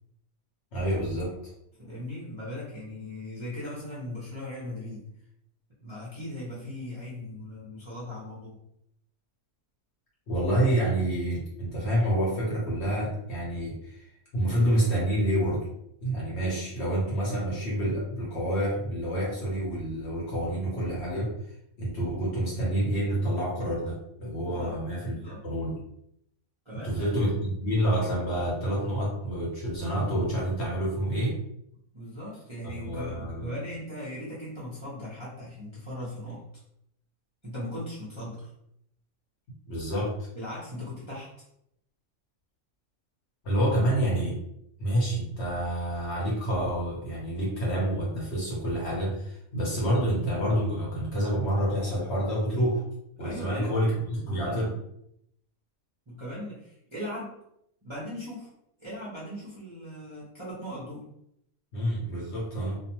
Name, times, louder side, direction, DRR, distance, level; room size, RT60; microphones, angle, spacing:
voice 1, 0.7-1.3 10.3-14.0 14.3-15.7 16.0-21.3 21.8-25.1 25.4-25.7 26.8-31.4 32.6-33.5 39.7-40.1 43.4-44.4 44.8-52.8 53.2-54.7 61.7-62.8, right 1 dB, 55° left, -5 dB, 0.9 m, -28 dB
voice 2, 1.8-5.0 5.8-8.6 24.4-24.8 25.0-25.4 26.6-27.2 31.9-36.4 37.4-38.5 40.3-41.3 53.2-53.7 54.2-54.6 56.1-57.4 57.8-58.5 58.8-61.1, left 1 dB, 30° right, -9 dB, 0.6 m, -38 dB
2.5 x 2.2 x 2.9 m, 0.77 s
omnidirectional pair, 1.6 m